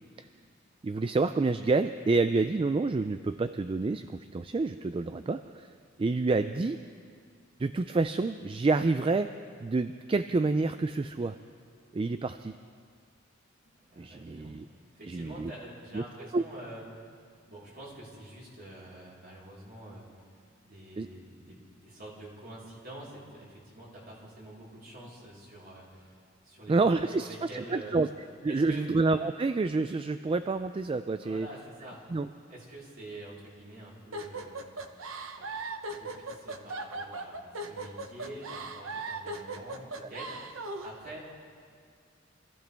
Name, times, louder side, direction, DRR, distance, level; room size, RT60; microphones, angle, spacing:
voice 1, 0.8-5.7 6.0-6.8 7.6-9.3 9.6-11.4 11.9-12.6 14.0-14.7 15.0-15.5 15.9-16.0 16.3-16.4 21.0-21.1 26.7-28.1 28.4-31.5 32.1-32.3, right 3 dB, 25° right, 10 dB, 0.3 m, -28 dB
voice 2, 13.7-14.5 14.9-17.2 17.5-20.1 20.6-28.0 28.5-28.9 31.2-32.1 32.5-34.6 35.4-35.5 35.9-41.3, right 1 dB, 50° right, -6 dB, 4.2 m, -47 dB
sound 1, 34.1-40.9, right 2 dB, 85° right, 1.0 m, -38 dB
25.5 x 15.0 x 3.5 m, 2.1 s
head